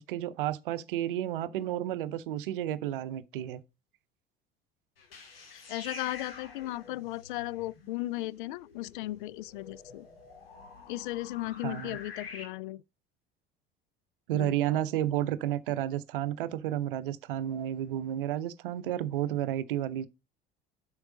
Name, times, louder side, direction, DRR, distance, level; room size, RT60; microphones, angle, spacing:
voice 1, 0.0-3.6 11.6-12.0 14.3-20.1, right 12 dB, 65° right, 0.7 m, -31 dB
sound 1, 5.0-12.4, left 5 dB, 75° left, 2.2 m, -48 dB
voice 2, 5.5-10.1 10.9-12.8 14.3-14.6, left 17 dB, 60° left, 0.4 m, -36 dB
7.8 x 6.0 x 3.8 m
figure-of-eight pair, 65°, 29 cm